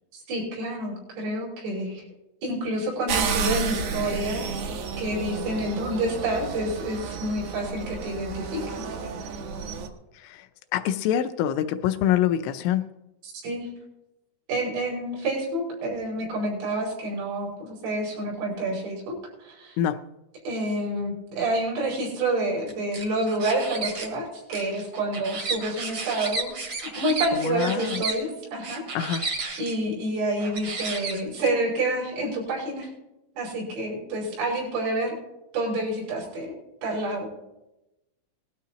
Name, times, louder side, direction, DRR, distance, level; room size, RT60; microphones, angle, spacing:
voice 1, 0.1-2.0 2.4-4.7 5.0-9.1 13.2-13.7 14.5-19.8 20.5-26.5 27.0-29.1 29.6-32.9 33.4-35.1 35.5-36.5 36.8-37.3, right 1 dB, 90° right, -4 dB, 8.0 m, -28 dB
sound 1, 3.1-9.9, right 6 dB, 75° right, 2.1 m, -31 dB
voice 2, 10.1-12.9 19.8-20.0 27.3-28.0 28.9-29.3, left 10 dB, 85° left, 7 dB, 2.8 m, -25 dB
sound 2, 22.7-24.1 24.5-28.2 28.6-29.7 30.4-31.5, right 3 dB, 55° right, 1.4 m, -32 dB
20.0 x 13.0 x 2.9 m, 0.94 s
omnidirectional pair, 5.7 m